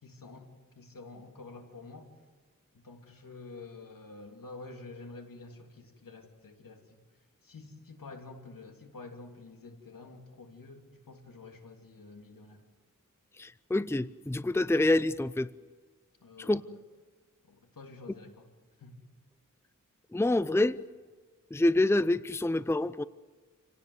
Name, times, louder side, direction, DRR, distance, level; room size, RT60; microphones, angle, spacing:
voice 1, 0.0-0.5 0.8-2.1 2.7-7.0 7.4-12.6 16.2-16.8 17.4-18.5 18.8-18.9, left 3 dB, 85° left, 3 dB, 3.1 m, -48 dB
voice 2, 13.4-15.5 16.4-16.6 20.1-20.8 21.5-23.0, left 2 dB, 10° left, 16 dB, 0.6 m, -27 dB
28.0 x 17.5 x 8.1 m, 1.4 s
wide cardioid pair, 60°, 33 cm